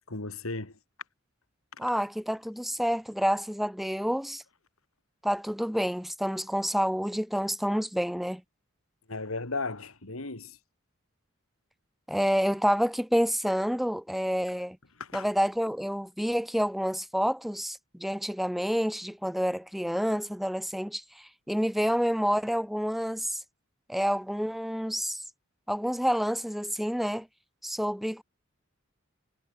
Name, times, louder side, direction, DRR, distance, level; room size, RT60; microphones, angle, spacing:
voice 1, 0.1-0.8 1.8-1.9 9.1-10.6 15.0-15.3, left 3 dB, 90° left, 2.9 m, -35 dB
voice 2, 1.8-4.4 5.2-8.4 12.1-14.8 15.1-23.4 23.9-25.2 25.7-27.3 27.6-28.2, equal, ahead, 0.8 m, -28 dB
head